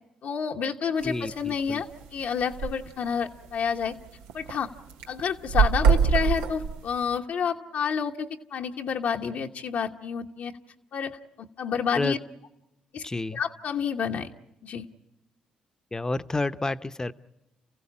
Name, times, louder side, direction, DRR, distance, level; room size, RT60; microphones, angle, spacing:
voice 1, 0.2-3.9 4.3-4.7 5.1-10.5 10.9-12.2 12.9-13.0 13.3-14.3 14.6-14.9, left 6 dB, 70° left, 1 dB, 1.0 m, -29 dB
voice 2, 1.0-1.8 11.9-12.2 13.0-13.4 15.9-17.1, left 2 dB, 20° left, 12 dB, 0.8 m, -30 dB
sound 1, 1.0-1.3 1.7-1.8 2.0-2.1 2.4-2.8 3.3-3.4 3.8-4.6 4.9-7.1, right 6 dB, 85° right, 0.8 m, -23 dB
29.5 x 15.5 x 8.6 m, 0.92 s
supercardioid pair, 55°, 3 cm